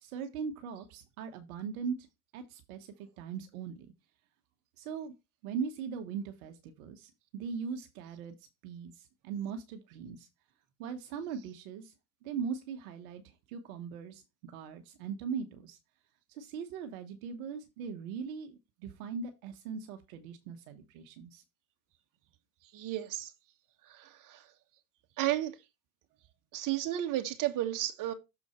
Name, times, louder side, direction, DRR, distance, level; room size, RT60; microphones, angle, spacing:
voice 1, 0.0-2.1 2.3-3.9 4.8-5.1 5.4-8.3 8.6-10.3 10.8-11.9 12.2-15.8 16.3-21.4, right 6 dB, 70° right, 1.2 m, -40 dB
voice 2, 22.7-23.3 23.8-24.5 25.2-25.6 26.5-28.1, right 14 dB, 45° right, 1.7 m, -33 dB
6.9 x 4.4 x 4.4 m
hypercardioid pair, 95°, 43 cm